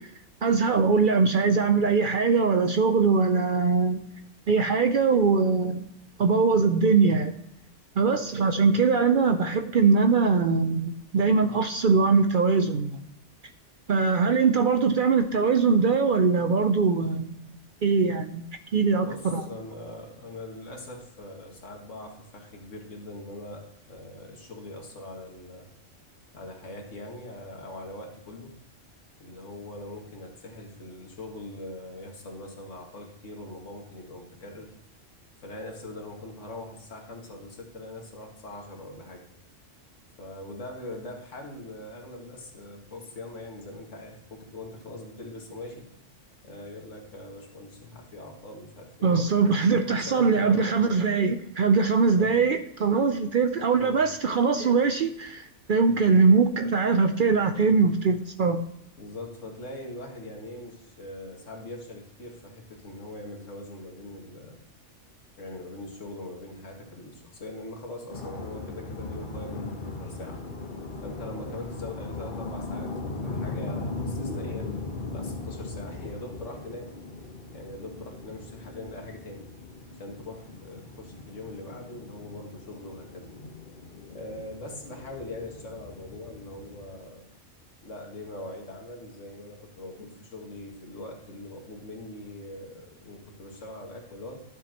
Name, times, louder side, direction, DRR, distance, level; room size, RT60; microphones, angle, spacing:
voice 1, 0.4-4.0 4.5-5.8 6.2-7.4 8.0-13.0 13.9-17.5 17.8-18.5 18.7-19.4 49.0-58.6, right 4 dB, 55° right, 7 dB, 0.6 m, -22 dB
voice 2, 19.0-25.7 26.3-28.6 29.2-34.7 35.4-39.3 40.2-45.9 46.4-49.1 49.7-50.7 52.0-52.4 53.8-54.0 55.8-55.9 59.0-64.6 65.4-70.4 71.0-74.7 75.1-76.9 77.5-79.4 79.9-83.3 84.1-87.2 87.8-94.4, left 1 dB, 75° left, 1 dB, 2.1 m, -42 dB
sound 1, 68.1-87.0, left 3 dB, 45° left, 1.3 m, -38 dB
12.0 x 7.2 x 2.9 m, 0.79 s
omnidirectional pair, 1.3 m